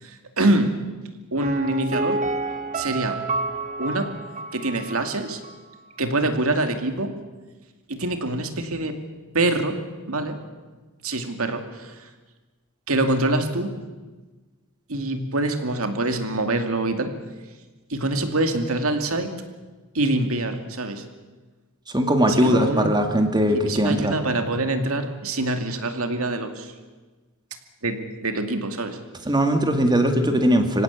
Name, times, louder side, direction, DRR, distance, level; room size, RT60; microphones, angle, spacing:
voice 1, 0.0-0.7 1.3-2.2 2.7-3.2 3.8-4.1 4.5-5.4 6.0-7.1 7.9-9.0 9.3-9.8 10.1-10.4 11.0-12.1 12.9-13.7 14.9-17.1 17.9-19.3 19.9-21.0 22.3-22.9 23.5-26.7 27.8-29.0, right 2 dB, 70° right, 6 dB, 2.4 m, -25 dB
Piano, 1.4-5.2 5.4-5.5, right 3 dB, 35° right, 1.9 m, -29 dB
voice 2, 21.9-24.1 29.3-30.8, equal, 20° right, 5 dB, 2.1 m, -20 dB
25.0 x 17.0 x 8.4 m, 1.3 s
head